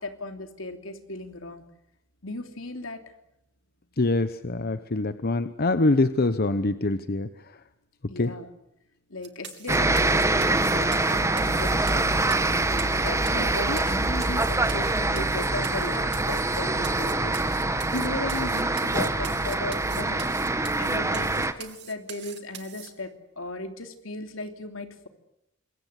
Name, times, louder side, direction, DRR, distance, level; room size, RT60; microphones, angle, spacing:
voice 1, 0.0-1.6 2.2-3.0 8.1-8.5 9.1-12.3 12.6-17.3 17.6-20.3 20.8-23.1 23.4-25.1, left 2 dB, 75° left, 6 dB, 3.0 m, -36 dB
voice 2, 4.0-7.3 8.2-8.3, left 2 dB, 50° left, 11 dB, 0.9 m, -24 dB
sound 1, 9.2-22.9, right 11 dB, 60° right, 2.5 m, -43 dB
sound 2, 9.7-21.5, right 2 dB, 15° right, 1.4 m, -25 dB
26.5 x 22.5 x 8.2 m, 0.81 s
head